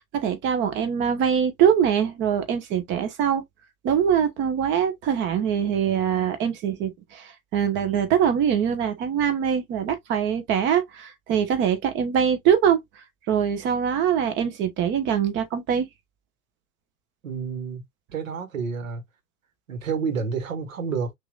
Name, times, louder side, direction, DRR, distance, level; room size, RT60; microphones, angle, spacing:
voice 1, 0.1-3.4 3.8-12.8 13.3-15.9, right 8 dB, 25° right, 1.0 m, -23 dB
voice 2, 17.2-17.8 18.1-19.0 19.7-21.1, right 5 dB, 60° right, 1.5 m, -29 dB
5.9 x 2.8 x 2.3 m
figure-of-eight pair, 95°, 44 cm